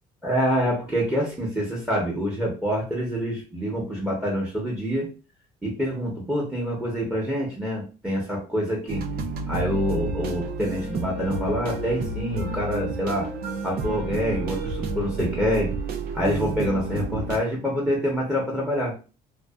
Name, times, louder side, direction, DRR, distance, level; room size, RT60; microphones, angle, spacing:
voice 1, 0.2-5.1 5.6-9.0 9.5-13.3 13.6-15.7 16.1-18.9, equal, 5° right, -3 dB, 0.9 m, -26 dB
sound 1, 8.9-17.4, right 3 dB, 65° right, 0.4 m, -30 dB
2.5 x 2.3 x 2.3 m, 0.33 s
cardioid pair, 110°, 17 cm